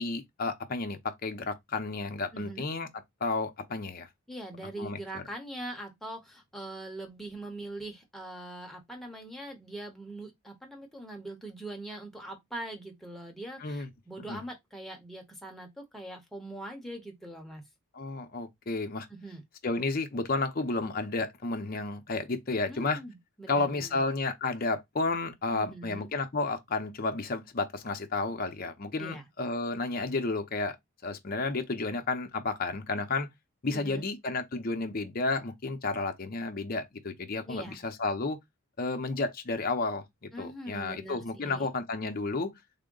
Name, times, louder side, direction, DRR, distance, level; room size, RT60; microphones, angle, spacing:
voice 1, 0.0-2.9 3.2-4.1 4.8-5.2 13.6-13.9 14.3-14.4 17.9-19.1 19.6-23.0 23.5-30.8 31.0-33.3 33.6-38.4 38.8-40.0 40.4-42.5, left 3 dB, 45° left, 0.6 m, -32 dB
voice 2, 2.3-2.7 4.3-17.6 19.1-19.4 22.7-24.0 25.5-26.1 29.0-29.2 33.7-34.1 37.4-37.8 40.3-41.7, right 1 dB, ahead, 0.8 m, -42 dB
3.6 x 2.1 x 3.7 m
head